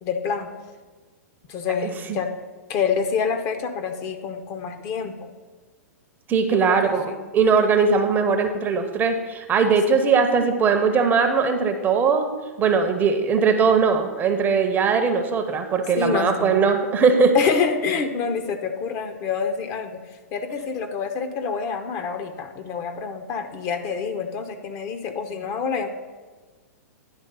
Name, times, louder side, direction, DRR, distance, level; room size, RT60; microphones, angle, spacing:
voice 1, 0.0-0.5 1.5-2.3 2.7-5.1 6.5-7.2 10.4-10.8 16.0-16.7 17.3-20.0 20.3-25.9, left 6 dB, 35° left, 7 dB, 0.7 m, -27 dB
voice 2, 6.3-12.3 12.6-17.3, right 5 dB, 20° right, 6 dB, 0.7 m, -20 dB
9.9 x 3.5 x 5.3 m, 1.3 s
figure-of-eight pair, 110°, 9 cm